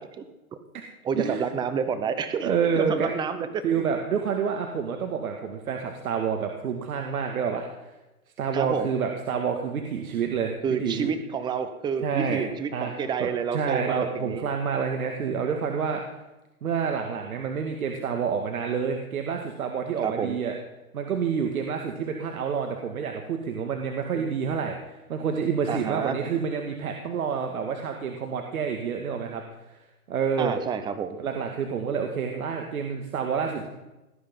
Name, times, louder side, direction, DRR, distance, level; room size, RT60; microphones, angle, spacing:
voice 1, 1.0-3.6 8.5-8.9 10.6-14.5 20.0-20.4 25.7-26.1 30.4-31.2, right 6 dB, 10° right, 10 dB, 0.8 m, -29 dB
voice 2, 2.4-3.1 3.6-7.7 8.4-10.5 10.8-11.1 12.0-12.4 12.7-16.0 16.6-20.5 20.9-24.8 25.1-29.4 30.1-30.5 31.2-33.7, right 6 dB, 70° right, 3 dB, 2.2 m, -28 dB
18.5 x 10.0 x 5.5 m, 1.0 s
hypercardioid pair, 145°, 45 cm